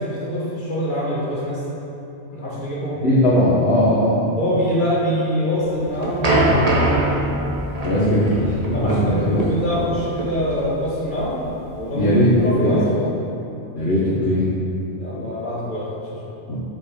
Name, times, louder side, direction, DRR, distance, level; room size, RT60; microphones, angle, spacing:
voice 1, 0.0-1.6 2.3-3.0 4.4-6.8 8.7-11.4 11.7-13.2 15.0-16.3, equal, 40° left, -7 dB, 2.0 m, -24 dB
voice 2, 3.0-4.3 7.8-9.4 11.9-12.7 13.7-14.5 16.5-16.6, equal, 55° left, -9 dB, 1.8 m, -18 dB
sound 1, 5.6-12.4, right 1 dB, 30° right, 1.3 m, -23 dB
7.8 x 6.5 x 5.2 m, 2.9 s
omnidirectional pair, 1.3 m